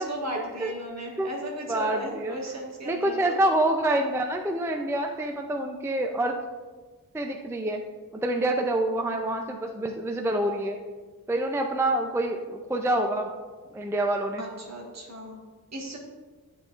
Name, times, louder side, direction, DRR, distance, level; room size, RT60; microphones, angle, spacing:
voice 1, 0.0-3.4 8.3-8.4 14.4-15.4 15.7-16.0, right 1 dB, 50° right, -2 dB, 1.6 m, -36 dB
voice 2, 1.7-2.4 2.9-6.4 7.1-7.8 8.2-10.8 11.3-13.3 13.7-14.4, right 1 dB, 10° right, 3 dB, 0.4 m, -26 dB
11.0 x 3.8 x 2.4 m, 1.4 s
wide cardioid pair, 80°, 34 cm